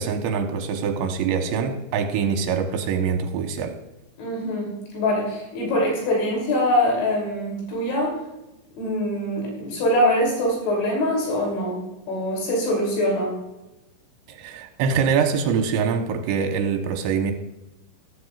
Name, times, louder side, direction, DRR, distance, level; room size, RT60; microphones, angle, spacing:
voice 1, 0.0-3.7 14.3-17.3, right 6 dB, 75° right, 4 dB, 3.3 m, -24 dB
voice 2, 4.2-8.1 8.8-11.8 12.1-13.3, left 1 dB, 75° left, -2 dB, 5.5 m, -23 dB
14.5 x 13.5 x 2.5 m, 0.96 s
omnidirectional pair, 5.4 m